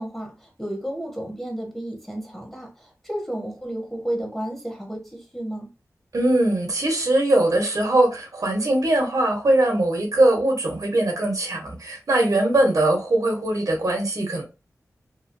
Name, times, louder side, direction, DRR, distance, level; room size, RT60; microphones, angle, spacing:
voice 1, 0.0-5.7, right 1 dB, 5° left, 1.2 m, -32 dB
voice 2, 6.1-14.4, right 1 dB, 70° right, 1.1 m, -21 dB
3.0 x 2.3 x 2.6 m
wide cardioid pair, 65°, 6 cm